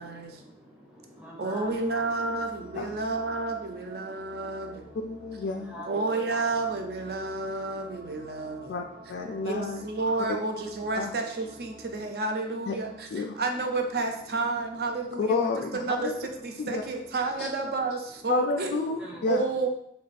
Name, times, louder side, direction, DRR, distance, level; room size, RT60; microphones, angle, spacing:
voice 1, 0.0-1.8 2.9-3.3 3.9-5.0 5.6-6.5 7.1-8.7 9.0-9.5 11.7-12.0 19.0-19.2, left 1 dB, 5° right, -2 dB, 0.6 m, -47 dB
voice 2, 1.4-4.7 5.9-8.6 9.5-12.9 13.4-15.4 15.8-16.1 16.7-18.0 18.2-18.8 19.3-19.7, right 3 dB, 55° right, 4 dB, 0.5 m, -30 dB
sound 1, 1.6-17.3, equal, 80° right, 0.8 m, -51 dB
voice 3, 5.0-5.7 8.7-8.8 9.1-9.8 11.0-11.1 12.7-12.8 13.1-13.4 15.2-16.1 16.6-16.8 17.4-17.5 18.3-19.4, left 4 dB, 65° left, 2 dB, 0.3 m, -30 dB
3.1 x 2.3 x 4.1 m, 0.73 s
head